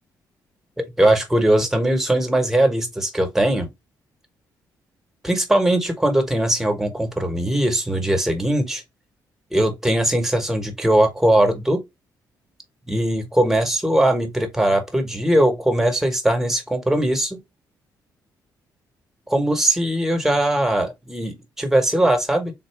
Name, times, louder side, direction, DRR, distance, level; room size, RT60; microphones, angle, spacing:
voice 1, 0.8-3.7 5.2-8.8 9.5-11.8 12.9-17.4 19.3-22.5, right 1 dB, 5° right, 1.1 m, -20 dB
3.8 x 2.6 x 4.5 m
cardioid pair, 115°, 7 cm